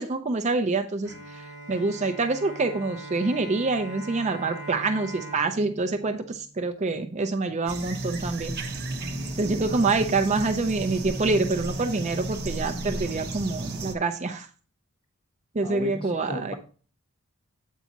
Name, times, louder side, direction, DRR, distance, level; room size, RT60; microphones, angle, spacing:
voice 1, 0.0-8.5 9.4-14.5 15.5-16.5, right 3 dB, 30° right, 7 dB, 0.5 m, -26 dB
Bowed string instrument, 1.1-7.2, right 2 dB, 65° left, 1.6 m, -42 dB
sound 1, 7.7-13.9, right 2 dB, 45° right, 0.9 m, -33 dB
voice 2, 15.6-16.5, equal, 25° left, 0 dB, 1.4 m, -36 dB
8.3 x 4.7 x 4.0 m, 0.39 s
head